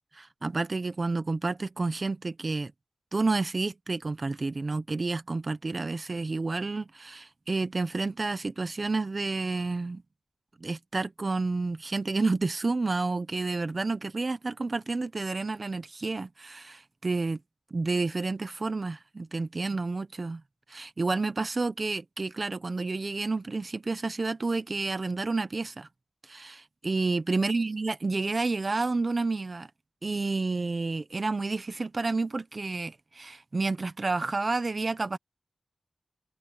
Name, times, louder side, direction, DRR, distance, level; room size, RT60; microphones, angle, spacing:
voice 1, 0.1-2.7 3.1-10.0 10.6-17.4 17.7-20.4 20.7-25.9 26.2-29.7 30.0-35.2, right 3 dB, 45° right, 1.1 m, -30 dB
cardioid pair, 65°, 0 cm